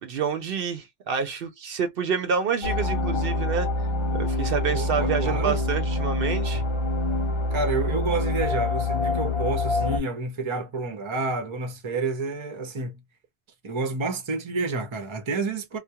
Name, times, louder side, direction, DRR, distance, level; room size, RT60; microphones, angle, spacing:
voice 1, 0.0-3.7 4.1-6.6, right 6 dB, 70° right, 0.7 m, -28 dB
sound 1, 2.6-10.0, left 2 dB, 35° left, 0.7 m, -26 dB
voice 2, 4.7-5.6 7.5-13.0 13.6-15.8, right 3 dB, 35° right, 0.6 m, -29 dB
2.2 x 2.1 x 2.7 m
omnidirectional pair, 1.0 m